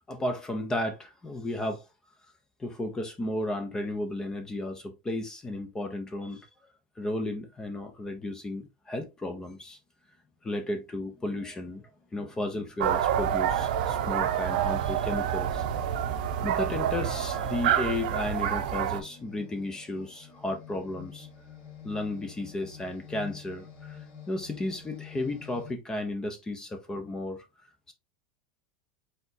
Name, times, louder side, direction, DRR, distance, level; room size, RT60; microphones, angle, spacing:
voice 1, 0.0-1.8 2.6-6.5 7.0-9.8 10.4-11.8 12.1-15.6 16.4-21.3 21.8-24.0 24.3-27.4 27.9-28.0, left 1 dB, 15° left, 0.7 m, -34 dB
sound 1, 11.1-11.4 12.0-25.7, left 8 dB, 55° left, 1.8 m, -50 dB
sound 2, 12.8-19.0, right 9 dB, 75° right, 0.7 m, -28 dB
4.2 x 4.0 x 2.7 m
supercardioid pair, 135°, 5 cm